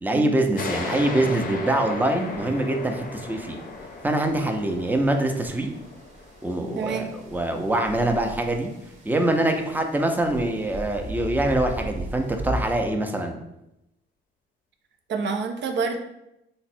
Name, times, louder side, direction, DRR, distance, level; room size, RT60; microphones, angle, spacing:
voice 1, 0.0-3.6 4.0-5.7 6.4-8.7 9.0-13.4, right 1 dB, 10° right, 3 dB, 0.5 m, -24 dB
sound 1, 0.6-7.7, left 3 dB, 45° left, 0.5 m, -36 dB
sound 2, 1.1-12.7, right 1 dB, 35° right, 0.8 m, -39 dB
voice 2, 6.8-7.1 15.1-16.0, right 5 dB, 65° right, 5 dB, 0.5 m, -27 dB
3.5 x 2.1 x 4.2 m, 0.87 s
cardioid pair, 90°, 20 cm